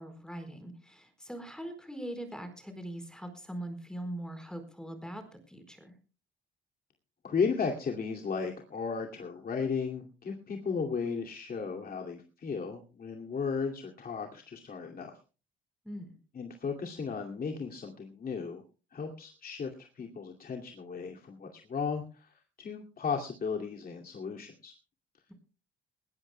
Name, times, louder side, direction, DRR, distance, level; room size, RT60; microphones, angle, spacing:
voice 1, 0.0-6.0 15.8-16.2, right 1 dB, 5° left, 8 dB, 4.4 m, -41 dB
voice 2, 7.2-15.2 16.3-18.6 18.9-24.7, left 5 dB, 45° left, 2 dB, 2.4 m, -35 dB
20.0 x 17.5 x 2.2 m, 0.34 s
cardioid pair, 90°, 20 cm